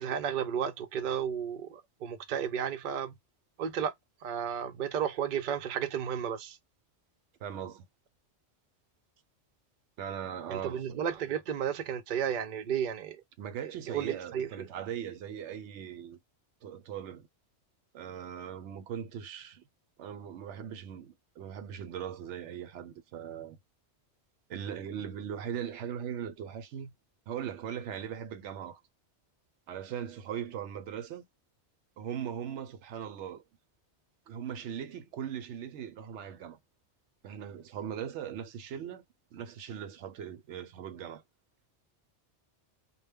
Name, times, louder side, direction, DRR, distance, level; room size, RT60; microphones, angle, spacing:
voice 1, 0.0-3.1 3.6-3.9 4.2-6.6 10.5-13.2 13.9-14.7, right 8 dB, 55° right, 0.6 m, -33 dB
voice 2, 7.4-7.8 10.0-11.0 13.4-16.2 16.6-17.3 17.9-19.6 20.0-23.6 24.5-26.9 27.3-28.8 29.7-31.3 32.0-33.4 34.3-36.6 37.2-39.0 39.3-41.2, right 9 dB, 80° right, 0.9 m, -39 dB
2.2 x 2.1 x 3.4 m
omnidirectional pair, 1.2 m